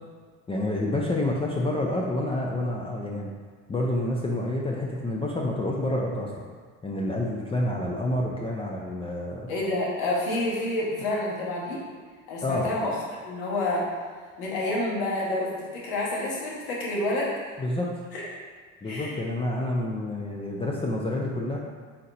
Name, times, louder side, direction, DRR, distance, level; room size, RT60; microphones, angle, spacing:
voice 1, 0.5-3.3 3.7-6.5 6.8-9.5 12.4-12.7 17.6-17.9 18.8-21.6, left 1 dB, 15° left, -2 dB, 0.4 m, -28 dB
voice 2, 9.5-11.8 12.3-13.0 13.2-13.9 14.4-17.3 18.1-18.2 18.8-19.1, left 1 dB, 75° left, -5 dB, 1.4 m, -28 dB
4.1 x 2.7 x 4.2 m, 1.5 s
supercardioid pair, 85°, 37 cm